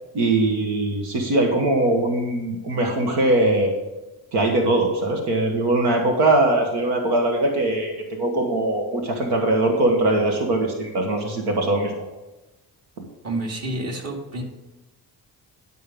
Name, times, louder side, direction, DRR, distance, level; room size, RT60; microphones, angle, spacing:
voice 1, 0.1-3.8 4.3-12.0, right 2 dB, 85° right, 2 dB, 1.4 m, -21 dB
voice 2, 13.2-14.4, right 2 dB, 40° right, 1 dB, 2.4 m, -29 dB
10.5 x 5.6 x 5.3 m, 1.1 s
cardioid pair, 75°, 38 cm